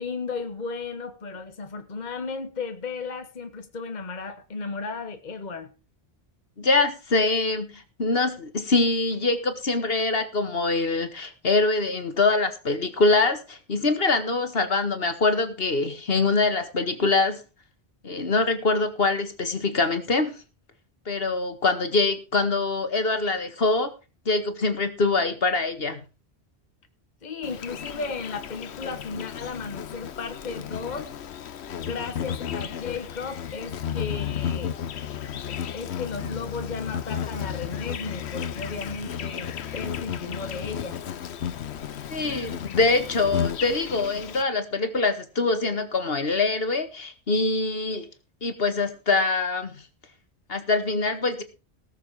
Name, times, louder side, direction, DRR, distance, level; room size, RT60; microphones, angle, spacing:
voice 1, 0.0-5.7 27.2-31.1 31.8-34.7 35.4-41.0, left 4 dB, 45° left, 8 dB, 1.3 m, -35 dB
voice 2, 6.6-17.4 18.0-20.4 21.1-23.9 24.3-26.0 42.1-48.1 48.4-49.7 50.5-51.4, left 3 dB, 65° left, 9 dB, 1.9 m, -24 dB
Insect, 27.4-44.4, left 8 dB, 80° left, 1.1 m, -33 dB
18.5 x 7.1 x 4.8 m, 0.32 s
omnidirectional pair, 1.1 m